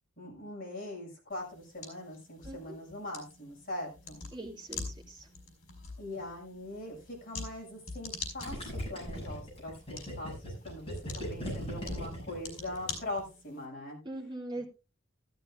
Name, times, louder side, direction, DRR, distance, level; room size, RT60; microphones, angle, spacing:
voice 1, 0.2-4.2 6.0-10.9 11.3-14.0, left 1 dB, 45° left, -2 dB, 6.2 m, -42 dB
sound 1, 1.3-13.6, left 4 dB, 75° left, 4.4 m, -46 dB
voice 2, 2.4-2.8 4.3-5.3 14.0-14.6, right 2 dB, 20° right, -1 dB, 2.6 m, -41 dB
Gurgling, 8.4-13.1, equal, 25° left, 6.7 m, -39 dB
14.0 x 13.0 x 2.4 m, 0.30 s
head